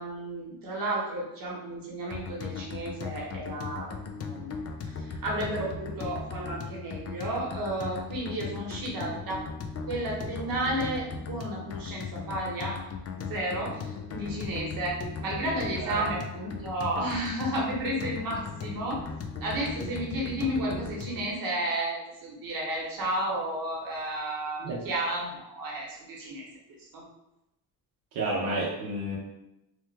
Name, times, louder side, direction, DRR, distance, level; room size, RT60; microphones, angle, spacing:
voice 1, 0.0-3.9 4.3-4.5 4.8-9.5 9.9-12.8 13.1-19.0 19.4-26.5 26.9-27.0, right 1 dB, 55° right, -3 dB, 1.2 m, -32 dB
sound 1, 2.1-21.3, left 5 dB, 40° left, 0.4 m, -38 dB
voice 2, 28.1-29.2, right 2 dB, 90° right, -6 dB, 0.8 m, -30 dB
3.0 x 2.1 x 3.3 m, 0.89 s
cardioid pair, 70°, 41 cm